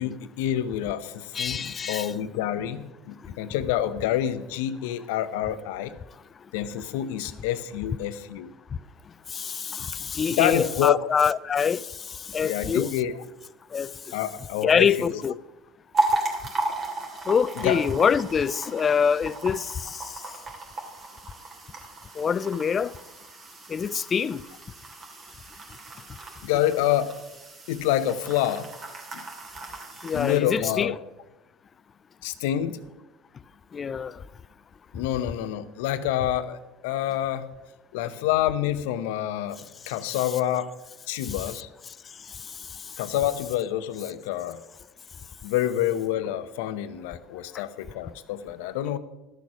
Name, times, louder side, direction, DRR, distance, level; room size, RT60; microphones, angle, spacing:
voice 1, 0.0-5.9 6.5-8.5 10.4-11.0 12.4-13.1 14.1-15.2 17.6-17.8 26.4-27.2 27.7-28.7 29.1-29.3 30.1-31.0 32.2-32.8 34.9-37.5 37.9-39.6 39.9-40.7 41.1-41.7 43.0-44.6 45.4-49.0, left 11 dB, 75° left, 0.7 m, -27 dB
voice 2, 1.3-2.1 9.3-12.9 13.7-14.2 14.6-15.4 17.3-20.2 22.2-22.9 23.7-24.4 30.0-31.0 33.7-34.2 41.2-41.5, left 6 dB, 35° left, 0.4 m, -25 dB
sound 1, 15.9-30.4, right 2 dB, 40° right, 2.8 m, -34 dB
13.0 x 6.4 x 6.1 m
hypercardioid pair, 80°, 0 cm